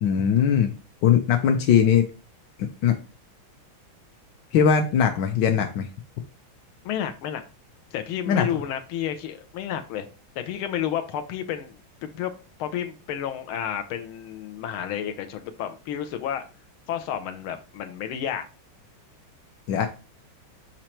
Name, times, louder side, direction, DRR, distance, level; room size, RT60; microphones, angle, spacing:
voice 1, 0.0-0.7 1.0-2.1 2.6-3.0 4.5-5.9 8.3-8.5 19.7-19.9, left 8 dB, 70° left, 4 dB, 1.2 m, -20 dB
voice 2, 6.8-7.4 7.9-10.1 10.4-11.8 12.0-12.3 12.6-16.5 16.9-18.5, left 10 dB, 90° left, 7 dB, 1.6 m, -31 dB
5.1 x 4.5 x 4.3 m, 0.33 s
omnidirectional pair, 2.2 m